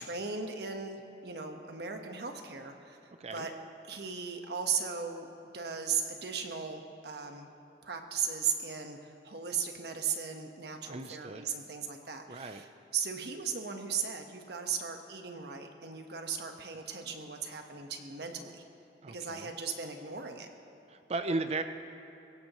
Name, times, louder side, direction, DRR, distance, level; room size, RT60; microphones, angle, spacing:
voice 1, 0.0-3.5 3.9-5.3 5.5-7.5 7.8-12.7 12.9-18.6 19.1-20.5, right 6 dB, 65° right, 4 dB, 1.3 m, -37 dB
voice 2, 10.9-11.5 12.3-12.6 19.0-19.5 20.9-21.6, right 3 dB, 40° right, 8 dB, 0.6 m, -36 dB
22.5 x 17.0 x 3.1 m, 2.9 s
head